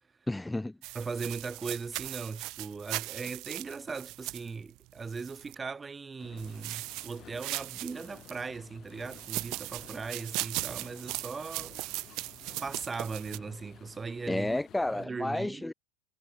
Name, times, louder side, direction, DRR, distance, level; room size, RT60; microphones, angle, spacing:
voice 1, 0.3-0.8 14.3-15.7, left 2 dB, 5° left, 1.0 m, -31 dB
sound 1, 0.8-5.5 6.4-8.4 9.0-13.4, right 21 dB, 45° right, 1.2 m, -39 dB
voice 2, 0.9-11.8 12.6-14.6 14.9-15.7, right 4 dB, 15° right, 1.3 m, -39 dB
sound 2, 6.2-15.1, left 10 dB, 30° left, 4.3 m, -54 dB
supercardioid pair, 130°, 0 cm